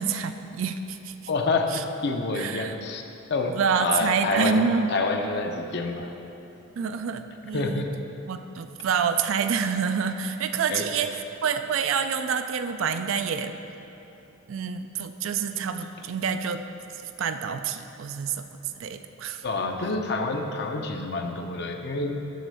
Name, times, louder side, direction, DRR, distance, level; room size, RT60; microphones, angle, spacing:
voice 1, 0.0-1.1 1.7-1.8 2.3-2.8 3.5-4.9 6.8-7.8 8.3-13.5 14.5-16.6 17.2-18.4 18.8-19.4, right 6 dB, 70° right, 8 dB, 0.3 m, -27 dB
voice 2, 1.3-3.0 3.3-6.1 7.5-7.9 10.7-10.8 19.4-22.2, left 3 dB, 55° left, 4 dB, 0.6 m, -28 dB
9.4 x 4.1 x 6.8 m, 3.0 s
head